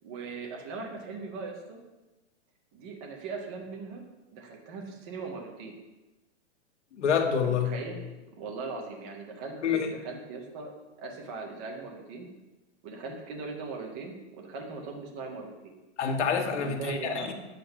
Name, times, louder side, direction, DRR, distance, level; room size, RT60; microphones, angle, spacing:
voice 1, 0.0-1.8 2.7-5.7 7.4-8.0 8.4-10.7 11.0-12.3 12.8-15.5 16.5-17.3, right 4 dB, 10° right, 1 dB, 0.3 m, -39 dB
voice 2, 6.9-7.7 9.6-9.9 16.0-17.3, left 7 dB, 80° left, 4 dB, 1.9 m, -27 dB
10.0 x 7.9 x 5.2 m, 1.1 s
hypercardioid pair, 165°, 35 cm